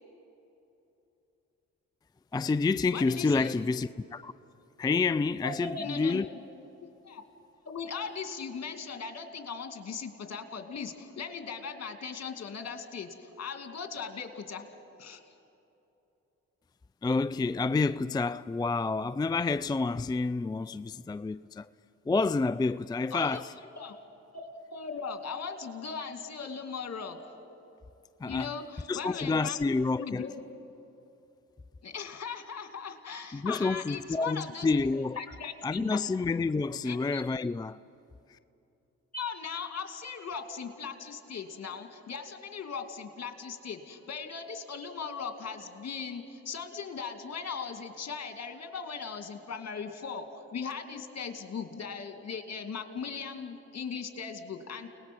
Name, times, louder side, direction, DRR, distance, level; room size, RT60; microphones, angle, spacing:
voice 1, 2.3-4.3 4.8-6.3 17.0-21.7 22.1-23.5 28.2-28.5 28.9-30.2 33.3-35.2 35.6-37.8 38.3-38.4, left 3 dB, 15° left, 0.4 m, -29 dB
voice 2, 2.9-3.6 5.4-6.2 7.0-7.2 7.7-14.7 15.0-15.2 23.1-23.4 23.8-24.0 24.3-27.3 28.3-29.6 30.0-30.4 31.8-34.7 35.2-36.0 36.8-37.2 39.1-54.9, left 5 dB, 55° left, 2.5 m, -38 dB
30.0 x 19.5 x 6.2 m
supercardioid pair, 50°, 31 cm